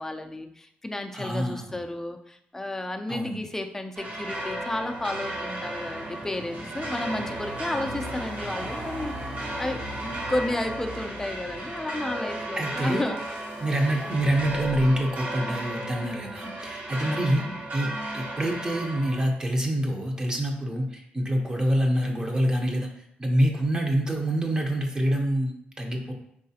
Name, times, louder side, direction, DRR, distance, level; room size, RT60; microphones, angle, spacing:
voice 1, 0.0-9.1 9.6-13.2 17.4-17.6, left 1 dB, 10° left, 5 dB, 0.4 m, -32 dB
voice 2, 1.1-1.8 3.1-3.4 12.6-13.0 13.6-22.9 23.2-26.1, right 1 dB, 20° right, 1 dB, 0.7 m, -26 dB
sound 1, 3.9-19.2, right 1 dB, 50° right, 1.0 m, -34 dB
sound 2, 13.2-15.1, left 4 dB, 90° left, 0.4 m, -42 dB
4.8 x 3.1 x 2.8 m, 0.73 s
cardioid pair, 100°, 4 cm